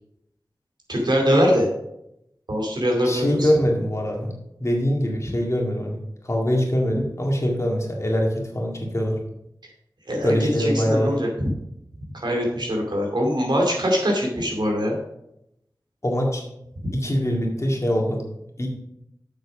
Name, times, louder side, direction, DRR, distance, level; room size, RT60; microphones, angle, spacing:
voice 1, 0.9-1.7 2.5-3.5 10.1-11.5 12.1-15.0 16.8-16.9, equal, 75° right, 0 dB, 2.5 m, -22 dB
voice 2, 3.0-4.3 4.6-6.0 6.2-9.2 10.2-11.1 16.0-16.4 16.9-18.2 18.6-18.7, equal, 40° left, 0 dB, 2.0 m, -23 dB
7.4 x 6.3 x 4.9 m, 0.81 s
wide cardioid pair, 50°, 8 cm